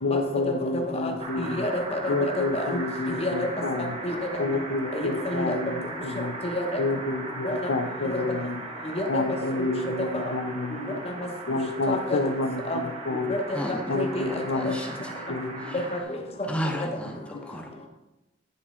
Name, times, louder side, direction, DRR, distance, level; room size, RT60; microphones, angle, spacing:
voice 1, 0.0-1.7 2.1-4.0 4.4-6.4 6.8-8.6 9.1-11.0 11.5-13.4 13.9-14.8 15.3-15.8 17.3-17.4, left 3 dB, 85° left, 7 dB, 0.6 m, -29 dB
voice 2, 0.9-2.8 3.2-3.5 4.0-4.4 4.9-5.6 6.4-6.8 7.4-7.6 8.0-8.2 9.0-9.2 9.6-9.7 10.0-10.2 11.0-11.1 11.9-12.2 12.7-12.8 13.3-14.3 14.6-14.7 15.7-16.2 16.8-16.9, left 1 dB, 35° left, 3 dB, 0.9 m, -29 dB
sound 1, 1.2-16.0, right 2 dB, 35° right, 0.8 m, -38 dB
voice 3, 13.5-15.3 15.6-15.9 16.5-17.9, equal, 5° left, 1 dB, 0.8 m, -34 dB
9.3 x 4.3 x 3.7 m, 1.0 s
head